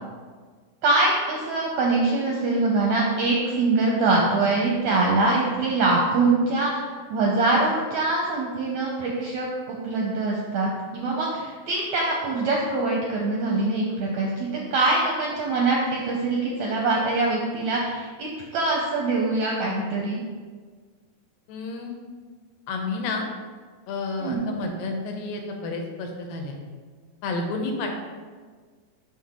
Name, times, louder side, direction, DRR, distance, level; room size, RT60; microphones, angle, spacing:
voice 1, 0.8-6.8 7.1-20.2 24.2-24.4, right 3 dB, 75° right, -2 dB, 1.7 m, -23 dB
voice 2, 21.5-21.9 22.7-23.3 23.9-26.6 27.2-27.9, left 3 dB, 80° left, 2 dB, 2.6 m, -30 dB
6.3 x 5.8 x 3.7 m, 1.5 s
omnidirectional pair, 4.1 m